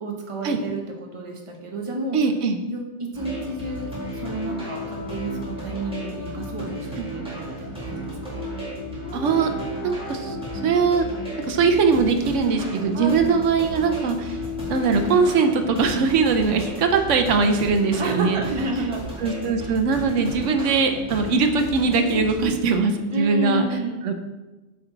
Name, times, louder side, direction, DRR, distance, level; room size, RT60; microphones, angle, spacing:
voice 1, 0.0-2.2 2.7-8.5 12.9-13.2 18.0-19.2 22.1-22.5 23.1-24.0, right 2 dB, 25° right, 0 dB, 1.0 m, -31 dB
voice 2, 2.1-2.6 7.0-7.1 9.1-9.5 9.8-10.4 10.6-11.1 11.5-14.4 14.7-18.4 18.7-18.9 19.2-23.6 24.0-24.2, right 5 dB, 85° right, 6 dB, 1.1 m, -21 dB
sound 1, 3.1-16.1, left 5 dB, 50° left, 1.1 m, -37 dB
sound 2, 3.1-22.5, right 1 dB, 5° right, 1.7 m, -35 dB
8.2 x 4.4 x 3.9 m, 1.1 s
omnidirectional pair, 1.2 m